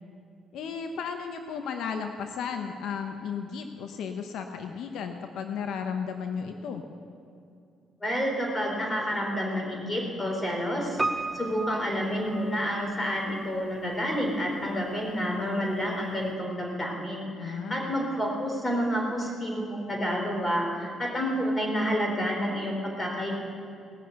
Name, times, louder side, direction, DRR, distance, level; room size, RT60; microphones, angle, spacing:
voice 1, 0.5-6.8 17.4-17.9, left 6 dB, 80° left, 6 dB, 0.9 m, -34 dB
voice 2, 8.0-11.0 11.3-23.3, equal, 20° left, 0 dB, 3.9 m, -29 dB
Piano, 11.0-13.0 13.3-13.4, right 3 dB, 15° right, 0.7 m, -33 dB
18.5 x 6.5 x 8.1 m, 2.5 s
cardioid pair, 90°, 0 cm